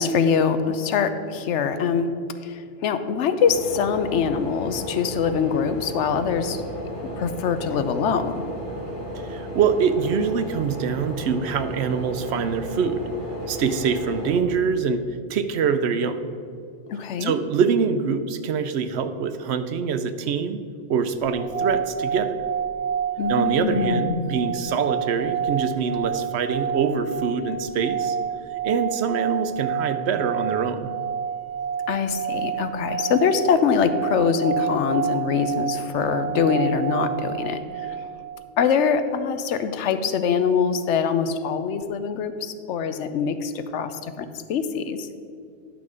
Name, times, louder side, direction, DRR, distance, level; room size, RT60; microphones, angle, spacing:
voice 1, 0.0-2.1 2.4-6.6 7.0-8.4 16.9-17.3 23.2-24.3 31.9-38.0 38.6-45.1, left 6 dB, 90° left, 10 dB, 0.9 m, -24 dB
sound 1, 3.4-14.4, equal, 45° left, 1.7 m, -34 dB
voice 2, 9.1-13.0 13.5-15.0 15.3-16.2 17.2-20.6 20.9-22.4 23.3-28.2 28.6-30.9, right 6 dB, 70° right, 10 dB, 0.9 m, -24 dB
sound 2, 21.2-38.4, right 8 dB, 45° right, 2.9 m, -29 dB
10.5 x 6.1 x 4.8 m, 2.4 s
omnidirectional pair, 1.2 m